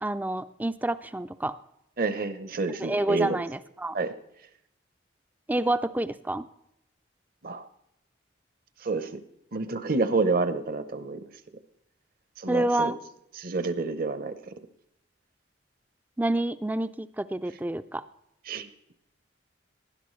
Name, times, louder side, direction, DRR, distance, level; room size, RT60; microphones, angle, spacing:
voice 1, 0.0-1.6 2.8-4.0 5.5-6.5 12.5-13.0 16.2-18.1, right 1 dB, 10° right, 14 dB, 0.4 m, -28 dB
voice 2, 2.0-3.4 3.9-4.1 7.4-7.7 8.8-9.1 9.5-11.2 12.4-12.9 13.4-14.5 18.5-18.7, right 3 dB, 50° right, 11 dB, 0.8 m, -28 dB
18.5 x 11.0 x 3.2 m, 0.81 s
head